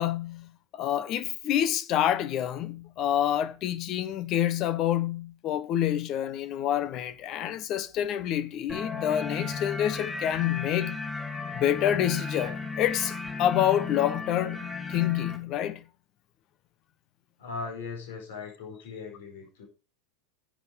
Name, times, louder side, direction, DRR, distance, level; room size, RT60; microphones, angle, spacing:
voice 1, 0.0-11.0 11.5-15.8, left 11 dB, 40° left, 1.2 m, -28 dB
sound 1, 8.7-15.4, left 4 dB, 10° left, 3.6 m, -35 dB
voice 2, 17.4-19.7, left 4 dB, 60° left, 4.8 m, -39 dB
10.5 x 7.6 x 5.2 m
figure-of-eight pair, 85°, 0 cm